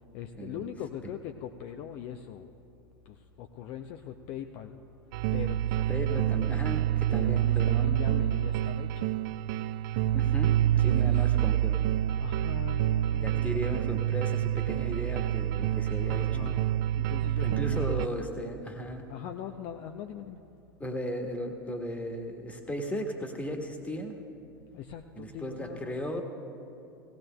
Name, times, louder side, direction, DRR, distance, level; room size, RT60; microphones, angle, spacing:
voice 1, 0.1-2.5 3.1-4.8 5.3-6.3 7.1-9.1 10.8-11.2 12.2-13.7 16.0-18.0 19.1-20.4 24.7-26.0, left 9 dB, 45° left, 5 dB, 0.5 m, -41 dB
sound 1, 5.1-18.1, right 12 dB, 55° right, 0.3 m, -27 dB
voice 2, 5.9-7.9 10.1-11.8 13.1-16.5 17.4-19.0 20.8-24.2 25.2-26.2, equal, 10° left, 3 dB, 1.4 m, -36 dB
18.0 x 17.0 x 2.2 m, 2.7 s
figure-of-eight pair, 85°, 12 cm